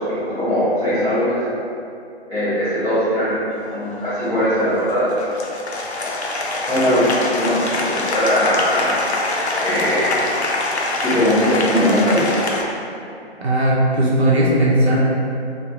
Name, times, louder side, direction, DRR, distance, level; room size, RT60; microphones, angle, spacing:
voice 1, 0.0-1.4 2.3-3.5 3.7-5.1 6.6-8.9 9.6-10.3 10.9-12.3, equal, 10° left, -19 dB, 0.6 m, -20 dB
Applause, 3.5-12.6, left 2 dB, 85° left, 0.5 m, -24 dB
voice 2, 13.4-15.0, right 1 dB, 75° right, -5 dB, 0.6 m, -17 dB
3.0 x 2.0 x 2.6 m, 2.6 s
figure-of-eight pair, 135°, 32 cm